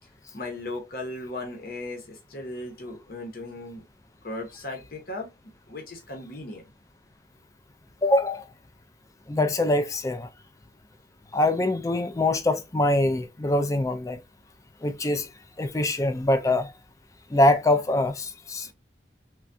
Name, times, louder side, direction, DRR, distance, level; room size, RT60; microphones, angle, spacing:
voice 1, 0.3-3.8 4.2-5.3 5.7-6.6 18.6-18.7, left 2 dB, 55° left, 0.8 m, -37 dB
voice 2, 8.0-8.4 9.3-10.3 11.3-14.2 14.8-15.3 15.6-16.7 17.3-18.7, left 1 dB, 20° left, 0.3 m, -23 dB
3.3 x 2.2 x 2.5 m
head